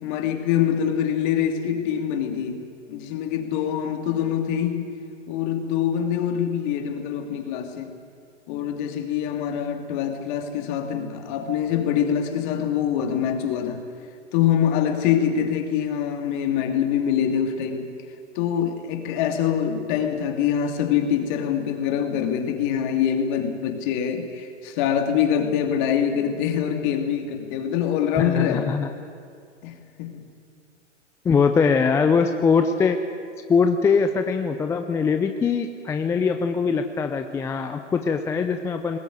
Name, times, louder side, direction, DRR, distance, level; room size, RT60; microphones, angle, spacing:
voice 1, 0.0-4.9 5.3-8.0 8.5-13.8 14.3-17.9 18.4-28.7 29.6-30.2, left 9 dB, 40° left, 6 dB, 2.7 m, -24 dB
voice 2, 28.2-28.9 31.2-33.0 33.5-39.0, left 5 dB, 10° left, 7 dB, 0.5 m, -22 dB
20.0 x 18.0 x 9.4 m, 2.3 s
hypercardioid pair, 120°, 37 cm